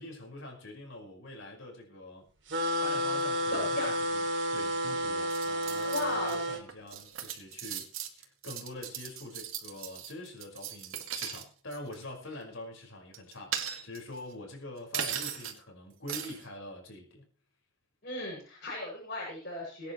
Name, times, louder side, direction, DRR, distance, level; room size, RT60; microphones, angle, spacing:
voice 1, 0.0-2.2 2.8-4.2 4.5-7.9 8.2-17.3, left 1 dB, 65° left, 1 dB, 5.4 m, -45 dB
sound 1, 2.5-6.6, equal, 60° right, 3.1 m, -31 dB
voice 2, 3.5-3.9 5.9-6.4 18.0-19.9, left 2 dB, 50° left, -4 dB, 7.5 m, -36 dB
sound 2, 5.3-6.3 6.7-11.4 11.7-12.0 13.1-14.2 14.9-15.6 16.1-16.4, right 8 dB, 85° right, 2.4 m, -38 dB
22.0 x 10.0 x 3.2 m, 0.41 s
head